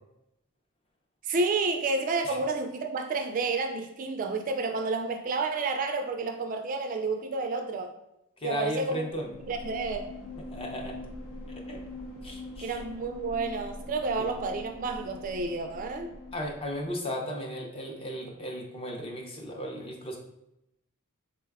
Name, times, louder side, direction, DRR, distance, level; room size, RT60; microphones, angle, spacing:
voice 1, 1.2-7.9 8.4-9.1 9.5-10.1 12.6-16.1, right 3 dB, 35° right, 5 dB, 0.3 m, -30 dB
voice 2, 8.4-9.3 10.5-11.0 11.6-11.8 12.2-12.8 16.3-20.2, equal, 25° left, 1 dB, 0.5 m, -35 dB
sound 1, 9.1-16.9, left 1 dB, 85° left, 0.8 m, -43 dB
3.8 x 2.2 x 3.4 m, 0.84 s
head